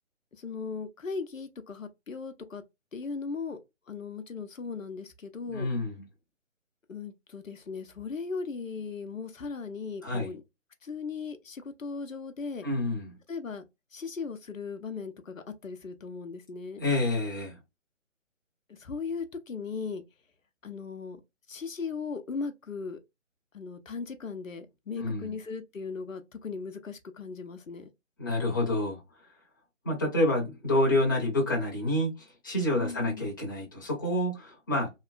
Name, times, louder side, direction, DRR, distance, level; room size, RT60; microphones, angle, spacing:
voice 1, 0.4-2.6 2.9-3.6 3.9-5.7 6.9-10.4 10.8-12.6 13.3-13.6 13.9-16.8 18.7-20.0 20.6-21.2 21.5-23.0 23.5-27.9 32.7-33.3, left 5 dB, 85° left, 0.6 m, -37 dB
voice 2, 5.5-5.9 10.0-10.3 12.6-13.1 16.8-17.6 25.0-25.3 28.2-29.0 29.8-32.1 32.4-34.9, left 1 dB, 15° left, 0.7 m, -28 dB
2.9 x 2.4 x 2.3 m
figure-of-eight pair, 145°, 38 cm